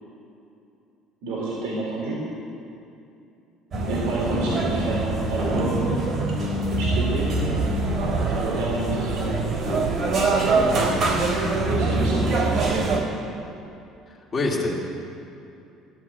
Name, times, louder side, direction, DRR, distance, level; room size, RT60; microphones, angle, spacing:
voice 1, 1.2-2.2 3.8-7.3 8.3-9.6 10.3-10.7 11.6-12.7, right 2 dB, 90° right, -4 dB, 3.6 m, -30 dB
sound 1, 3.7-13.0, right 3 dB, 45° right, 3.2 m, -24 dB
voice 2, 14.3-14.7, left 2 dB, 30° left, -4 dB, 2.3 m, -25 dB
14.5 x 9.6 x 9.0 m, 2.7 s
cardioid pair, 135°, 0 cm